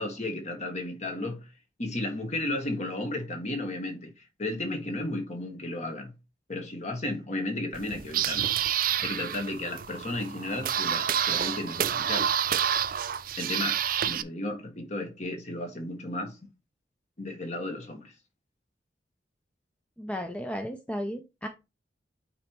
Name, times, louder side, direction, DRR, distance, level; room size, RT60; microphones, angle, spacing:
voice 1, 0.0-1.5 1.8-6.1 6.5-8.5 9.0-12.3 13.4-16.4 17.2-18.1, left 2 dB, 40° left, 1.4 m, -34 dB
sound 1, 7.7-14.2, right 9 dB, 50° right, 0.4 m, -28 dB
voice 2, 20.0-21.5, equal, 5° left, 0.5 m, -34 dB
8.5 x 3.0 x 4.5 m
head